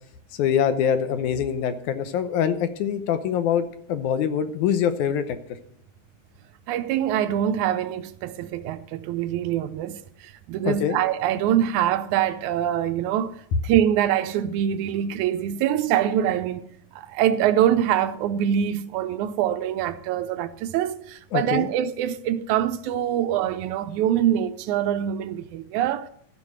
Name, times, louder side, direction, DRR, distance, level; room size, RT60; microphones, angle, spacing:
voice 1, 0.4-5.4 10.6-11.0 21.3-21.7, left 8 dB, 85° left, 2.3 m, -24 dB
voice 2, 6.7-13.4 13.6-16.6 17.0-26.1, right 10 dB, 85° right, 2.1 m, -24 dB
14.0 x 5.2 x 7.8 m
omnidirectional pair, 3.5 m